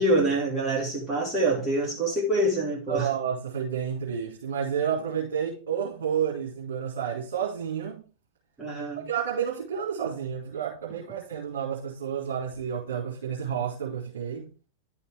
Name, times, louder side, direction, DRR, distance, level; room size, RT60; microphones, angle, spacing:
voice 1, 0.0-3.1 8.6-9.0, right 1 dB, 10° right, 2.9 m, -25 dB
voice 2, 2.9-8.0 9.0-14.5, right 8 dB, 60° right, 2.4 m, -30 dB
10.5 x 5.7 x 3.6 m
figure-of-eight pair, 90°, 0 cm